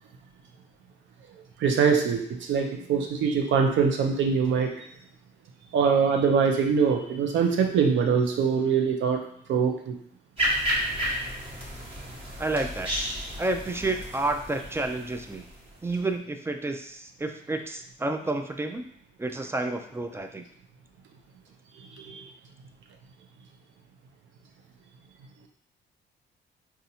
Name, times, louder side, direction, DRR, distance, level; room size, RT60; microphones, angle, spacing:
voice 1, 1.6-4.7 5.7-9.2 9.5-9.9 21.8-22.2, right 6 dB, 70° right, 3 dB, 0.6 m, -23 dB
sound 1, 10.4-16.0, equal, 30° right, 1.4 m, -32 dB
voice 2, 12.4-12.9 13.4-15.5 15.8-18.8 19.2-20.5, right 2 dB, 10° right, 5 dB, 0.4 m, -30 dB
4.0 x 2.4 x 2.8 m, 0.67 s
cardioid pair, 90°, 20 cm